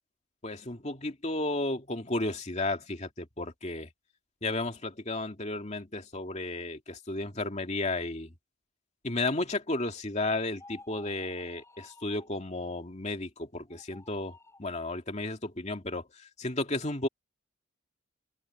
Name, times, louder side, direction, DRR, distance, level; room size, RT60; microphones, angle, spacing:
voice 1, 0.4-3.9 4.4-8.3 9.0-17.1, left 2 dB, 35° left, 2.5 m, -33 dB
sound 1, 10.5-12.4 13.7-14.7, left 2 dB, 15° left, 6.3 m, -53 dB
head